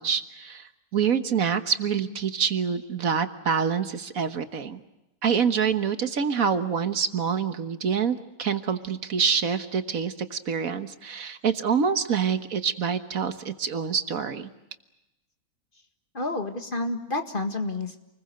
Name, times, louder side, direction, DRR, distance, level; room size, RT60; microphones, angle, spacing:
voice 1, 0.0-4.8 5.2-14.5, right 6 dB, 65° right, 10 dB, 1.7 m, -26 dB
voice 2, 16.1-18.0, left 2 dB, 35° left, 6 dB, 2.0 m, -29 dB
28.5 x 21.0 x 7.8 m, 0.95 s
omnidirectional pair, 1.6 m